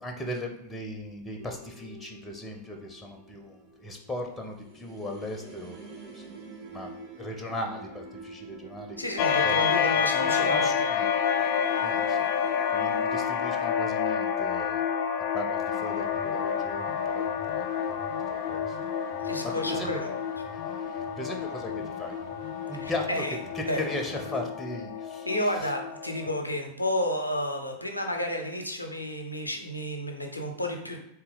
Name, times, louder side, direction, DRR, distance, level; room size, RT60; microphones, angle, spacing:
voice 1, 0.0-5.8 6.1-6.2 6.7-9.6 9.9-11.1 11.4-11.5 11.8-12.3 12.7-14.8 15.3-17.2 17.5-17.7 18.0-18.8 19.4-20.1 20.8-21.7 22.0-22.2 22.7-25.8, left 1 dB, 10° left, 3 dB, 0.7 m, -38 dB
sound 1, 1.4-13.9, right 2 dB, 30° right, 1.1 m, -48 dB
voice 2, 9.0-10.7 19.2-20.1 22.8-23.4 23.7-23.8 25.2-31.0, left 1 dB, 85° left, 3 dB, 0.6 m, -31 dB
sound 2, 9.2-26.4, left 7 dB, 45° left, 0.4 m, -29 dB
sound 3, 15.7-24.3, left 3 dB, 65° right, 1.5 m, -47 dB
4.0 x 2.8 x 3.9 m, 0.81 s
figure-of-eight pair, 90°, 0 cm